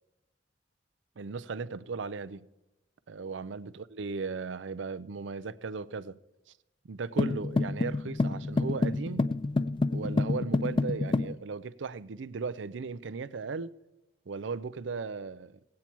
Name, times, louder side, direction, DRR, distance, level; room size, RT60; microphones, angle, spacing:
voice 1, 1.2-2.5 3.1-6.2 6.9-9.3 9.9-13.7 14.3-15.6, right 4 dB, 85° right, 0.5 m, -37 dB
sound 1, 7.2-11.4, left 3 dB, 25° left, 0.3 m, -28 dB
18.0 x 8.6 x 4.5 m
head